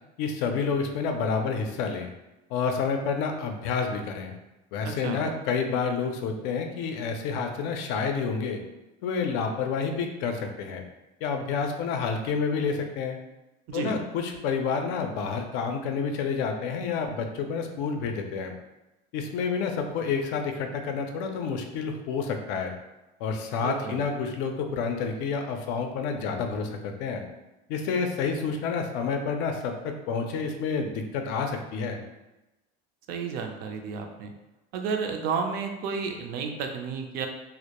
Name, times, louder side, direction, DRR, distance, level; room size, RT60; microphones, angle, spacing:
voice 1, 0.2-2.1 2.5-4.3 4.7-8.6 9.0-10.8 11.2-13.2 13.7-18.5 19.1-22.7 23.2-27.2 27.7-32.0, left 5 dB, 65° left, 5 dB, 0.4 m, -29 dB
voice 2, 4.8-5.3 13.7-14.0 23.6-24.0 33.1-34.3 34.7-37.3, right 5 dB, 50° right, 4 dB, 0.4 m, -32 dB
2.2 x 2.0 x 2.8 m, 1.0 s
cardioid pair, 135°, 19 cm